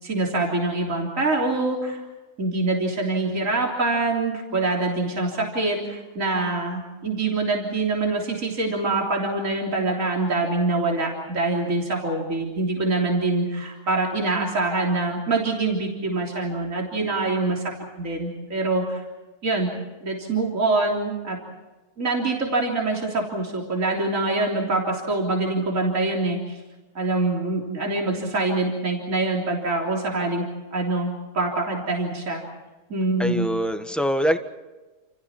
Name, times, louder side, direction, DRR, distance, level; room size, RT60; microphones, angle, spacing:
voice 1, 0.0-2.0 2.4-17.6 18.0-19.0 19.4-19.7 20.0-21.4 22.0-26.6 26.9-30.5 30.7-32.4 32.9-33.4, right 2 dB, 50° right, -1 dB, 3.9 m, -25 dB
voice 2, 33.2-34.4, equal, ahead, 7 dB, 1.4 m, -23 dB
29.5 x 28.5 x 4.5 m, 1.2 s
omnidirectional pair, 1.7 m